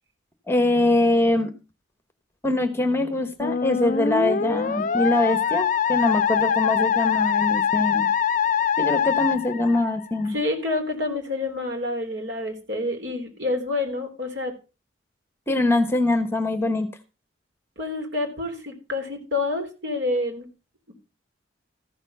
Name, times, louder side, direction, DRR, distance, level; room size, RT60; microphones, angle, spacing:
voice 1, 0.5-1.5 2.4-8.1 8.8-10.3 15.5-16.9, left 2 dB, 10° left, 9 dB, 1.1 m, -23 dB
Musical instrument, 3.4-10.3, left 7 dB, 40° left, 0.5 m, -23 dB
voice 2, 10.3-14.5 17.8-20.5, left 2 dB, 60° right, 3 dB, 3.6 m, -28 dB
14.0 x 7.0 x 5.5 m, 0.31 s
head